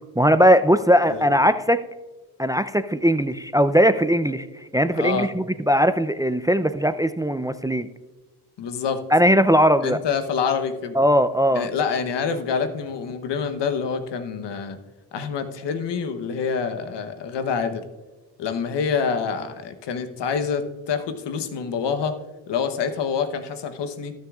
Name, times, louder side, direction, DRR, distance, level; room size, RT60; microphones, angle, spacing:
voice 1, 0.2-1.8 2.4-4.5 4.7-7.9 9.1-10.0 10.9-11.7, equal, 10° right, 12 dB, 0.4 m, -19 dB
voice 2, 5.0-5.3 8.6-9.0 9.8-11.0 11.5-14.8 15.1-17.9 18.4-22.2 22.5-24.1, left 6 dB, 75° left, 9 dB, 1.1 m, -26 dB
18.0 x 6.6 x 2.4 m, 1.2 s
supercardioid pair, 45°, 42 cm